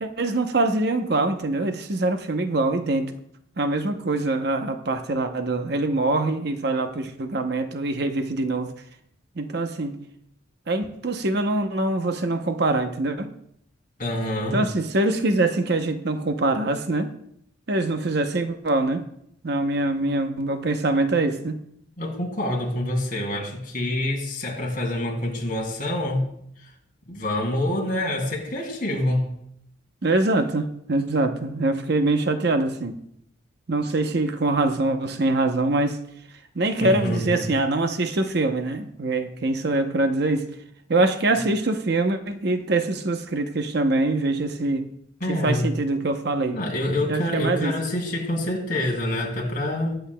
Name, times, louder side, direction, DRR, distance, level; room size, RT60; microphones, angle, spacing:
voice 1, 0.0-3.1 3.6-8.7 9.4-10.0 10.7-13.3 14.5-17.1 17.7-19.1 19.4-21.6 30.0-33.0 33.7-36.0 36.6-40.5 40.9-44.9 45.3-46.6 47.1-47.7, right 2 dB, 55° right, 6 dB, 0.8 m, -24 dB
voice 2, 14.0-14.6 22.0-26.3 26.6-26.7 27.1-29.3 36.8-37.4 45.2-45.7 46.5-50.0, left 1 dB, 45° left, -1 dB, 2.7 m, -26 dB
21.5 x 8.0 x 2.2 m, 0.71 s
head